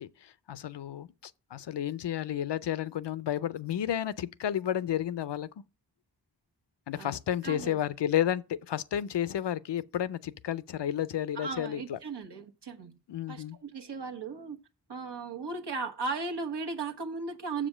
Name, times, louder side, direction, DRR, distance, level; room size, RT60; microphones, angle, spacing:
voice 1, 0.0-5.5 6.9-12.0 13.1-13.6, left 10 dB, 85° left, 0.6 m, -32 dB
voice 2, 7.4-7.8 11.3-12.9 13.3-14.6 14.9-17.7, right 4 dB, 80° right, 1.3 m, -36 dB
7.1 x 5.1 x 7.2 m
wide cardioid pair, 60°, 41 cm